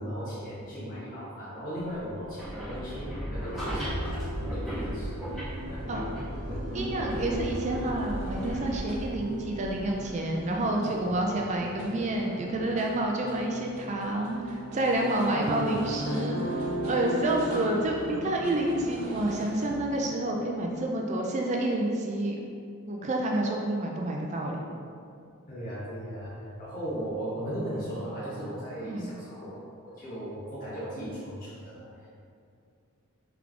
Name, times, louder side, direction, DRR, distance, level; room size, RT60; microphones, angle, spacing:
voice 1, 0.0-5.2 5.7-5.8 15.3-15.4 25.5-29.5 29.8-32.1, equal, 40° left, -10 dB, 1.0 m, -37 dB
sound 1, 2.1-10.2, equal, ahead, 1.4 m, -36 dB
sound 2, 3.3-20.1, equal, 65° left, 1.0 m, -38 dB
sound 3, 5.5-19.7, right 1 dB, 90° right, 0.9 m, -46 dB
voice 2, 6.5-22.4 22.9-24.6 28.8-29.1, right 1 dB, 35° right, 0 dB, 0.4 m, -29 dB
3.7 x 3.4 x 3.5 m, 2.4 s
head